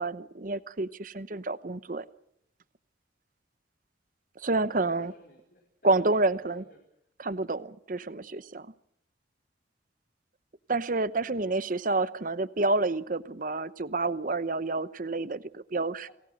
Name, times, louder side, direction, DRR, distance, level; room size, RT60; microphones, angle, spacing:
voice 1, 0.0-2.0 4.4-5.1 5.8-6.6 7.2-8.7 10.7-16.1, right 2 dB, 45° right, 15 dB, 0.9 m, -29 dB
voice 2, 4.9-6.8 16.0-16.1, left 1 dB, 50° left, 1 dB, 5.1 m, -56 dB
29.5 x 19.5 x 6.5 m, 0.74 s
head